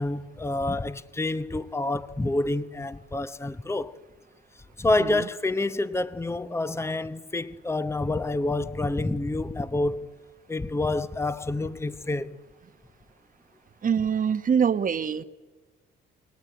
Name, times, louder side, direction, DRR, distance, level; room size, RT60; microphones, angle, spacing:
voice 1, 0.0-4.0 4.8-10.1 10.5-12.4, left 2 dB, 15° left, 1.0 m, -28 dB
voice 2, 13.8-15.2, right 7 dB, 45° right, 1.2 m, -24 dB
29.0 x 20.5 x 9.5 m
cardioid pair, 90°, 20 cm